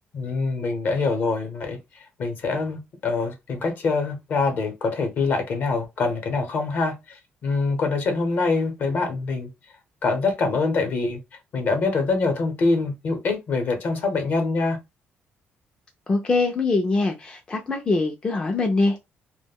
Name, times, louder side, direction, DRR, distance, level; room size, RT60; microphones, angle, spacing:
voice 1, 0.1-1.8 2.2-9.5 10.0-11.2 11.5-14.8, left 3 dB, 50° left, 0.8 m, -24 dB
voice 2, 16.1-19.0, left 3 dB, 20° left, 0.4 m, -23 dB
2.2 x 2.1 x 3.5 m
cardioid pair, 165°, 4 cm